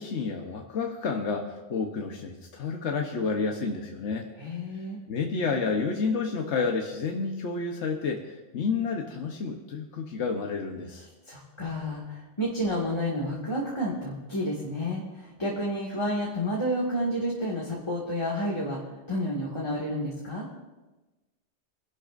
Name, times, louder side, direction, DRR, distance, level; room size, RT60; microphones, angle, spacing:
voice 1, 0.0-4.3 5.1-11.1, left 4 dB, 85° left, 2 dB, 1.3 m, -30 dB
voice 2, 4.4-5.0 11.3-18.8 19.1-20.5, equal, 25° left, -5 dB, 2.0 m, -30 dB
25.0 x 11.5 x 2.5 m, 1.1 s
omnidirectional pair, 1.2 m